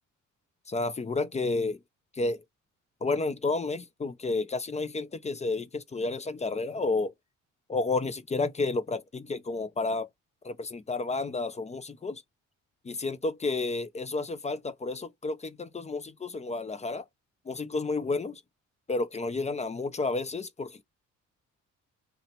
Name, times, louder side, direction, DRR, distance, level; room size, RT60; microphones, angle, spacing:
voice 1, 0.7-1.8 2.2-2.4 3.0-7.1 7.7-10.1 10.4-12.2 12.8-17.0 17.5-18.4 18.9-20.8, left 3 dB, 25° left, 0.5 m, -31 dB
2.8 x 2.1 x 4.0 m
cardioid pair, 90°, 30 cm